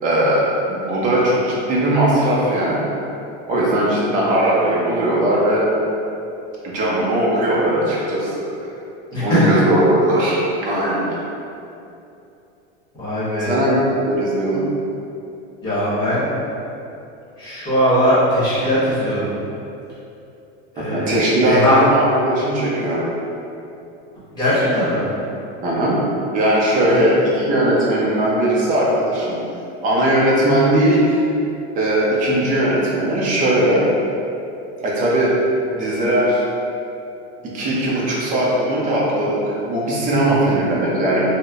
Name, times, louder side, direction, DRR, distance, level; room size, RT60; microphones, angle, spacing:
voice 1, 0.0-2.9 3.5-5.7 6.6-8.4 9.2-11.1 13.4-14.6 20.9-23.0 25.6-26.0 26.3-29.4 29.8-31.2 31.7-33.9 34.8-35.3 35.7-36.4 37.4-41.3, right 1 dB, 25° right, -6 dB, 0.6 m, -18 dB
voice 2, 9.1-9.5 13.0-13.5 15.6-16.3 17.4-19.4 20.7-21.8 24.3-25.1 26.9-27.0 40.2-40.6, equal, 10° left, -11 dB, 1.1 m, -20 dB
4.1 x 2.1 x 2.4 m, 2.7 s
supercardioid pair, 155°, 33 cm